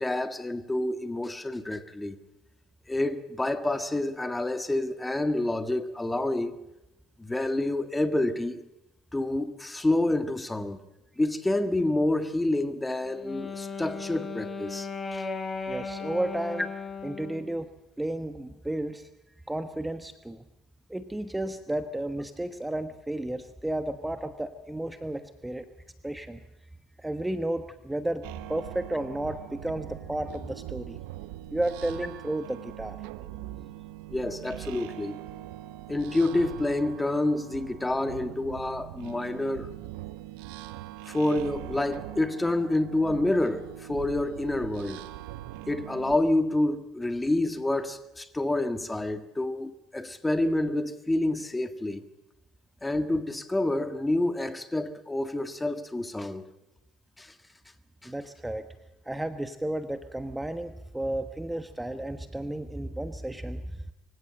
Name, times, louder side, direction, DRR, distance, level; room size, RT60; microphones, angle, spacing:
voice 1, 0.0-2.2 2.9-6.6 7.2-8.6 9.1-10.8 11.2-15.2 34.1-35.2 35.9-39.7 41.1-45.1 45.7-52.1 52.8-56.5 57.2-57.3 58.0-58.1, left 1 dB, 10° left, 1.7 m, -28 dB
Wind instrument woodwind instrument, 13.0-17.6, left 4 dB, 30° left, 3.2 m, -36 dB
voice 2, 15.7-16.7 17.0-17.7 18.0-19.1 19.5-20.4 20.9-25.7 26.0-26.4 27.0-31.0 31.5-33.0 58.0-58.6 59.0-63.9, right 1 dB, 10° right, 1.2 m, -33 dB
sound 1, 28.2-46.2, right 15 dB, 80° right, 0.8 m, -42 dB
24.0 x 16.0 x 7.8 m
supercardioid pair, 80°, 0 cm